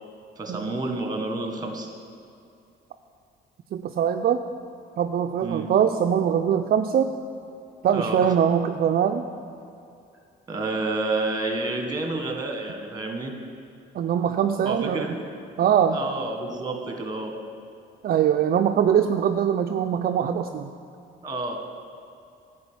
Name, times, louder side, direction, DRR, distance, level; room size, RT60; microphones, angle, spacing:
voice 1, 0.4-1.9 5.4-5.7 7.9-8.3 10.5-13.4 14.6-15.2 15.9-17.4 21.2-21.6, right 2 dB, 20° right, 3 dB, 1.6 m, -29 dB
voice 2, 3.7-4.4 5.0-7.2 7.8-9.3 13.9-15.1 15.6-16.0 18.0-20.7, right 8 dB, 50° right, 5 dB, 0.4 m, -22 dB
11.0 x 5.0 x 8.2 m, 2.6 s
cardioid pair, 90°, 20 cm